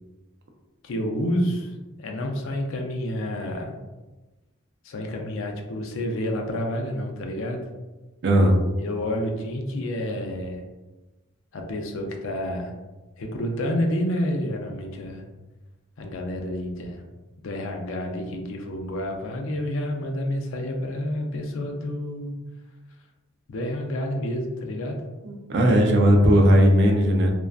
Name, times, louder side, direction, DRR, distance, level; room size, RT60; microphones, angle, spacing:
voice 1, 0.8-3.8 4.8-7.6 8.8-10.6 11.5-12.7 13.2-15.2 16.0-17.0 17.4-22.4 23.5-25.0, left 1 dB, 70° left, 2 dB, 0.4 m, -29 dB
voice 2, 8.2-8.6 25.2-27.3, equal, 60° right, 2 dB, 0.4 m, -17 dB
2.5 x 2.2 x 2.3 m, 1.2 s
head